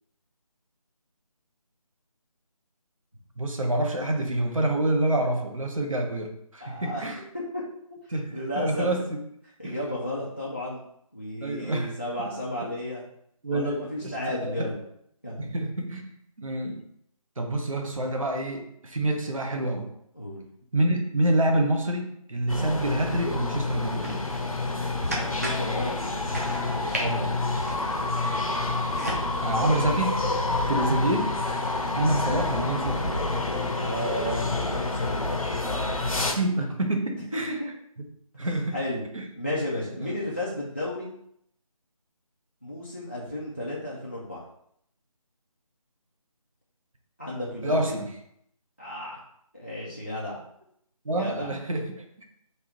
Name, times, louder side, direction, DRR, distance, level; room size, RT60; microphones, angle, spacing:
voice 1, 3.4-7.2 8.1-9.2 9.6-9.7 11.4-12.3 13.4-14.7 15.4-16.1 16.4-16.8 17.4-19.9 20.7-24.2 27.0-27.4 29.4-30.2 30.7-31.3 31.8-33.2 36.1-37.6 38.0-38.1 38.3-38.8 39.1-39.3 40.0-40.2 47.6-48.1 51.0-52.2, right 1 dB, 65° right, 3 dB, 0.9 m, -27 dB
voice 2, 6.6-7.0 8.1-8.9 9.6-10.8 11.1-13.0 13.5-14.8 15.2-15.5 20.1-20.4 25.2-26.1 26.7-27.0 33.7-35.2 37.3-37.7 38.4-39.0 39.4-41.1 42.6-44.4 47.2-47.8 48.8-49.2 49.5-50.4 51.1-51.5, left 1 dB, 20° left, -6 dB, 0.3 m, -33 dB
sound 1, 22.5-36.3, left 2 dB, 70° left, 0.8 m, -28 dB
sound 2, 24.0-29.2, right 1 dB, 25° right, 0.6 m, -35 dB
3.5 x 2.7 x 4.4 m, 0.73 s
figure-of-eight pair, 160°, 18 cm